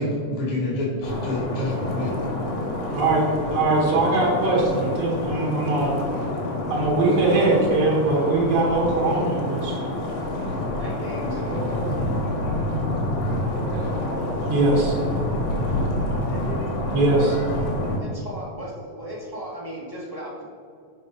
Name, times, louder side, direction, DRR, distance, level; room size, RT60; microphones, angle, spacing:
voice 1, 0.0-2.2, left 1 dB, 70° left, -5 dB, 3.1 m, -27 dB
sound 1, 1.0-18.0, left 1 dB, 90° left, 2.9 m, -27 dB
voice 2, 2.9-6.0 6.7-9.7 14.4-15.0 16.9-17.4, right 2 dB, 65° right, -4 dB, 3.2 m, -21 dB
voice 3, 10.8-12.0 13.7-14.3 16.2-16.6 18.0-20.4, equal, 20° left, -6 dB, 0.6 m, -36 dB
6.7 x 5.1 x 5.4 m, 2.2 s
omnidirectional pair, 3.4 m